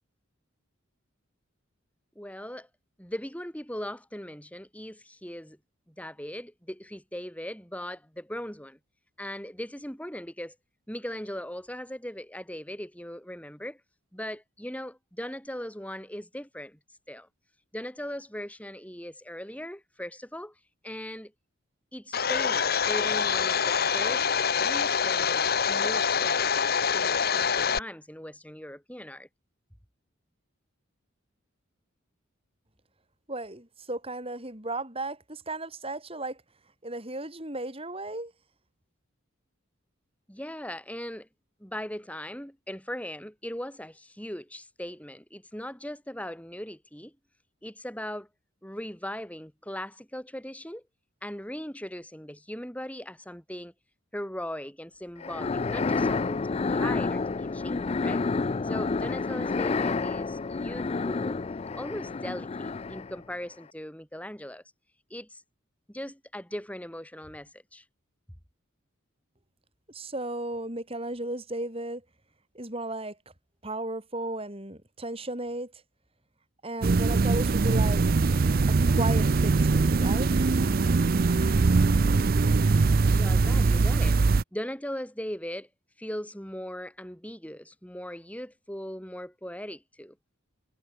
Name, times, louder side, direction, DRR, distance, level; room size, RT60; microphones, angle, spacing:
voice 1, 2.1-2.7 3.0-5.6 6.0-8.8 9.2-10.5 10.9-13.8 14.1-16.8 17.1-17.3 17.7-20.5 20.8-21.3 21.9-24.3 24.5-29.3 40.3-41.3 41.6-47.1 47.6-48.3 48.6-50.8 51.2-53.7 54.1-58.2 58.6-61.4 61.8-64.6 65.1-65.4 65.9-67.8 83.1-84.2 84.5-85.7 86.0-90.1, equal, 5° left, 5.1 m, -39 dB
Domestic sounds home sounds, 22.1-27.8, left 6 dB, 50° left, 1.1 m, -25 dB
voice 2, 33.3-36.4 36.8-38.3 69.9-72.0 72.5-73.2 73.6-75.7 76.6-78.0 78.7-80.3, right 2 dB, 30° right, 6.6 m, -35 dB
sound 1, 55.2-63.2, left 4 dB, 30° left, 0.4 m, -29 dB
sound 2, 76.8-84.4, right 3 dB, 45° right, 0.5 m, -22 dB
head